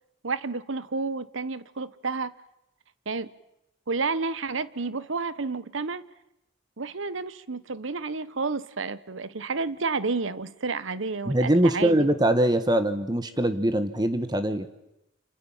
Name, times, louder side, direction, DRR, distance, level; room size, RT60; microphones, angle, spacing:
voice 1, 0.2-2.3 3.1-3.3 3.9-6.0 6.8-12.1, right 4 dB, 80° right, 1.0 m, -30 dB
voice 2, 11.3-14.7, right 1 dB, 20° right, 1.2 m, -23 dB
27.5 x 27.5 x 7.3 m
head